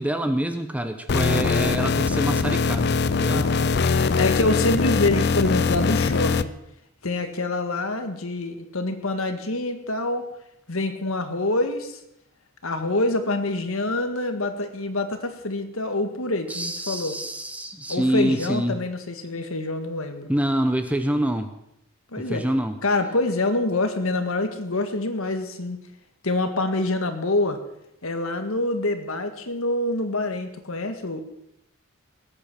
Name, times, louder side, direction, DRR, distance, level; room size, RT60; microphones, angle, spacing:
voice 1, 0.0-3.5 16.5-18.8 20.3-21.5 22.2-22.8, right 1 dB, 5° right, 7 dB, 0.9 m, -26 dB
sound 1, 1.1-6.4, left 4 dB, 50° left, 0.5 m, -22 dB
voice 2, 3.3-6.5 7.0-10.3 10.7-12.0 12.6-17.2 17.9-20.3 22.1-22.4 22.8-25.8 26.2-27.6 28.0-31.2, left 2 dB, 70° left, 7 dB, 1.7 m, -26 dB
20.0 x 8.7 x 6.0 m, 0.81 s
head